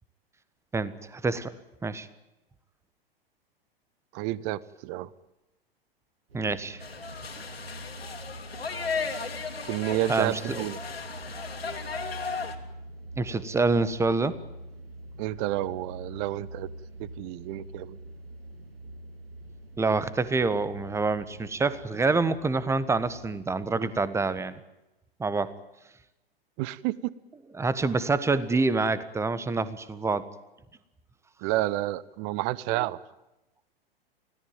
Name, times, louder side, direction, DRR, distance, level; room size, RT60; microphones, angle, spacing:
voice 1, 0.7-1.5 1.8-2.1 6.3-6.8 10.1-10.6 13.2-14.4 19.8-24.6 25.2-25.5 27.5-30.3 32.7-32.9, right 3 dB, 10° right, 16 dB, 1.3 m, -27 dB
voice 2, 4.1-5.1 9.6-10.8 15.2-16.7 17.0-18.0 26.6-27.1 31.4-33.0, right 16 dB, 35° right, 22 dB, 0.9 m, -30 dB
sound 1, 6.3-24.0, right 1 dB, 75° right, 2.0 m, -44 dB
sound 2, 6.8-12.5, left 5 dB, 80° left, 2.9 m, -35 dB
25.0 x 17.5 x 9.1 m, 0.96 s
figure-of-eight pair, 100°, 30 cm